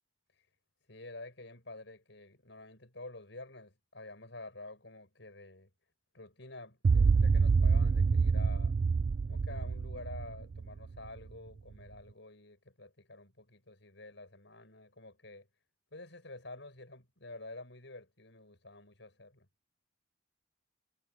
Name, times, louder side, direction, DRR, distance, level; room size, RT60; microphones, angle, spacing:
voice 1, 0.9-5.7 6.1-8.8 9.3-15.5 15.9-19.5, left 2 dB, 70° left, 7.5 m, -49 dB
sound 1, 6.8-11.2, right 5 dB, 45° right, 0.3 m, -27 dB
head